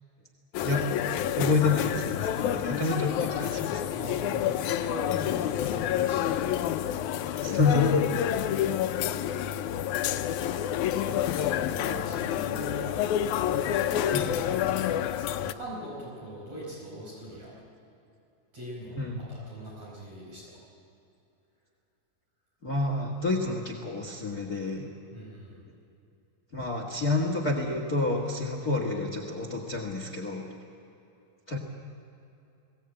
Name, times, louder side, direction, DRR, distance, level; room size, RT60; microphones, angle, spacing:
sound 1, 0.5-15.5, left 10 dB, 85° left, 1.7 m, -28 dB
voice 1, 1.3-3.8 7.4-8.0 11.8-12.0 14.1-14.3 19.0-19.2 22.6-24.9 26.5-30.4 31.5-31.6, left 3 dB, 35° left, 1 dB, 1.5 m, -29 dB
voice 2, 3.9-7.3 10.5-13.0 13.7-17.6 18.5-19.0 19.3-20.5 25.1-25.6, right 1 dB, 45° right, -5 dB, 6.0 m, -42 dB
21.0 x 18.0 x 8.9 m, 2.7 s
omnidirectional pair, 4.2 m